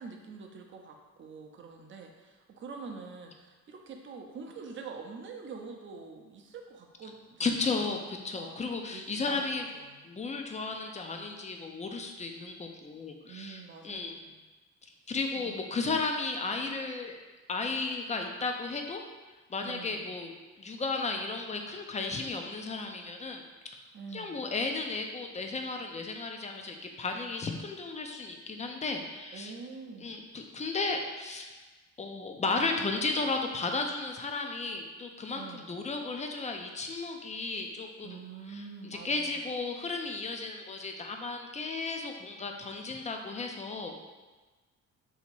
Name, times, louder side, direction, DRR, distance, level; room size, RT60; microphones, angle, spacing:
voice 1, 0.0-7.8 8.4-10.0 13.2-14.4 15.4-15.6 19.6-20.1 23.9-24.4 29.3-30.1 35.3-35.8 38.0-39.4, right 5 dB, 40° right, 2 dB, 0.6 m, -45 dB
voice 2, 7.4-9.6 10.0-14.2 15.1-17.2 17.5-19.0 19.5-23.4 23.7-23.8 24.1-29.5 30.0-31.5 32.0-38.2 38.5-38.6 39.0-44.0, left 3 dB, 25° left, 3 dB, 0.5 m, -34 dB
2.9 x 2.8 x 4.4 m, 1.2 s
cardioid pair, 90°, 30 cm